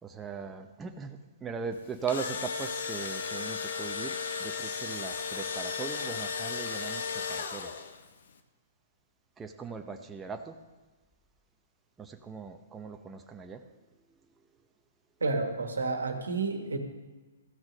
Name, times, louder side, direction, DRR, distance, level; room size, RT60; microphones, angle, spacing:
voice 1, 0.0-7.8 9.4-10.6 12.0-13.6, right 6 dB, 15° right, 5 dB, 0.7 m, -39 dB
Engine / Drill, 1.8-8.1, left 5 dB, 65° left, 0.9 m, -35 dB
voice 2, 15.2-16.8, right 3 dB, 85° right, 5 dB, 1.5 m, -30 dB
15.0 x 6.1 x 5.2 m, 1.2 s
hypercardioid pair, 125°, 0 cm